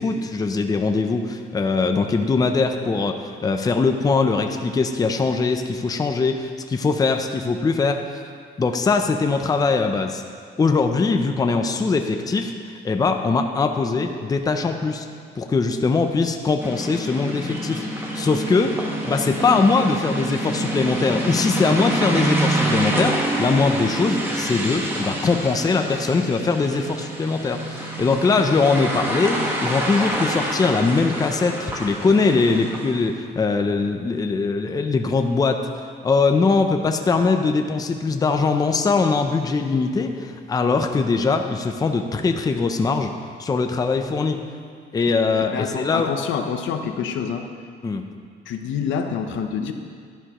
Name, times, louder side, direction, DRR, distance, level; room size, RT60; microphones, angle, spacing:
voice 1, 0.0-8.0 8.6-10.2 10.6-12.5 12.8-15.1 15.4-18.8 19.0-35.7 36.0-43.1 43.4-44.4 44.9-46.1 47.8-48.0, left 4 dB, 20° left, 5 dB, 0.5 m, -21 dB
sound 1, 16.6-33.1, right 1 dB, 10° right, 1.2 m, -27 dB
voice 2, 45.5-47.5 48.5-49.7, left 7 dB, 85° left, 6 dB, 0.8 m, -27 dB
12.0 x 11.0 x 3.0 m, 2.1 s
cardioid pair, 150°, 19 cm